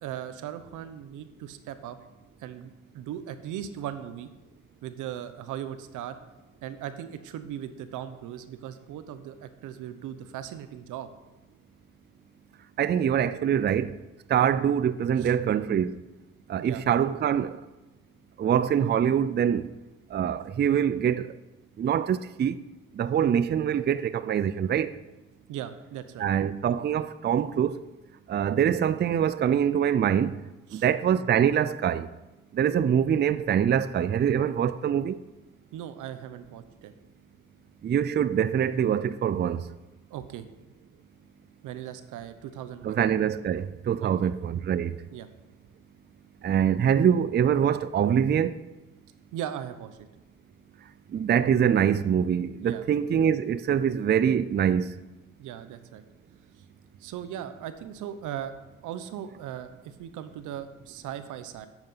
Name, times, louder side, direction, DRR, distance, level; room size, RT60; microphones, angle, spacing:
voice 1, 0.0-2.0 2.4-4.3 4.8-6.2 6.6-11.1 15.2-15.3 16.6-16.8 25.5-26.3 30.7-30.8 35.7-36.9 40.1-40.4 41.6-43.0 44.0-44.3 45.1-45.3 49.3-50.1 52.6-52.9 55.4-56.0 57.0-58.5 58.8-61.7, right 10 dB, 90° right, 0.9 m, -38 dB
voice 2, 12.8-14.0 14.3-16.0 16.5-17.6 18.4-19.7 20.1-21.4 21.8-22.6 22.9-24.9 26.2-27.8 28.3-30.4 30.7-32.1 32.5-35.2 37.8-39.6 42.8-45.0 46.4-48.5 51.1-54.9, right 8 dB, 35° right, 0.4 m, -24 dB
8.9 x 8.1 x 5.7 m
cardioid pair, 90°, 30 cm